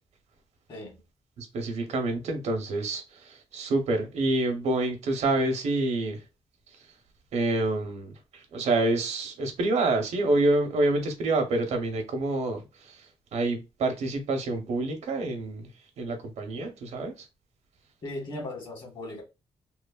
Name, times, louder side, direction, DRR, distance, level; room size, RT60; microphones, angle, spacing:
voice 1, 0.7-1.0 18.0-19.2, left 1 dB, 45° left, 1.4 m, -37 dB
voice 2, 1.4-6.2 7.3-13.0 13.3-15.7 16.0-17.3, right 2 dB, 85° right, 0.8 m, -27 dB
3.1 x 2.1 x 2.3 m
wide cardioid pair, 140°, 11 cm